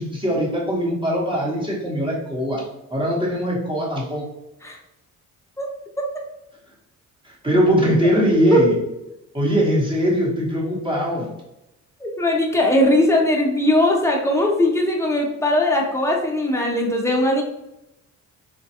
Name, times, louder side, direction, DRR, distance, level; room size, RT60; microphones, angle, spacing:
voice 1, 0.0-2.6 2.9-4.2 7.2-8.8 9.3-11.3, equal, 15° right, -4 dB, 1.0 m, -21 dB
voice 2, 8.3-8.6 12.0-17.4, left 1 dB, 10° left, -1 dB, 0.7 m, -19 dB
3.1 x 2.2 x 2.8 m, 0.90 s
cardioid pair, 90°, 30 cm